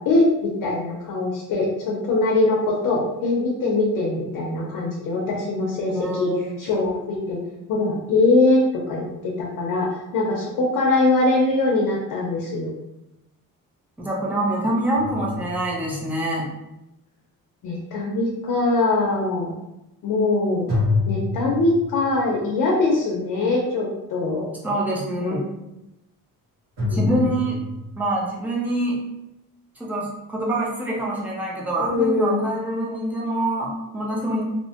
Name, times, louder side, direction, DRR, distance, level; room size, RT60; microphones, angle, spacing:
voice 1, 0.1-7.4 7.7-12.7 17.6-19.5 20.0-20.7 21.1-24.5 25.1-25.4 26.8-27.2 31.8-32.4, left 2 dB, 70° left, -2 dB, 0.6 m, -22 dB
voice 2, 5.9-6.4 14.0-16.5 24.6-25.4 26.9-27.6 28.0-29.0 29.8-34.5, right 1 dB, 5° right, -4 dB, 0.4 m, -25 dB
sound 1, 15.0-16.1 20.7-22.2 26.8-27.9, left 3 dB, 85° right, 1.2 m, -26 dB
2.8 x 2.1 x 2.7 m, 0.91 s
cardioid pair, 170°, 34 cm